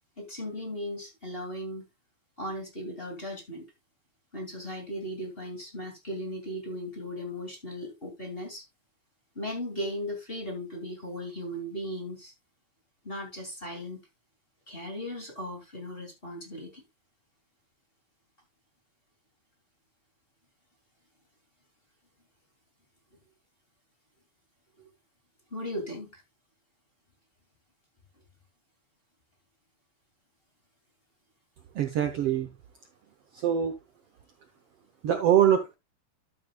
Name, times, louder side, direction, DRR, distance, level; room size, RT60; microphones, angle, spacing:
voice 1, 0.2-1.8 2.4-3.7 4.3-8.7 9.3-12.3 13.0-14.0 14.7-16.8 24.8-24.9 25.5-26.2, equal, 20° left, 2.1 m, -37 dB
voice 2, 31.7-32.5 33.3-33.7 35.0-35.7, right 9 dB, 85° right, 1.3 m, -23 dB
12.5 x 7.7 x 2.3 m
omnidirectional pair, 3.8 m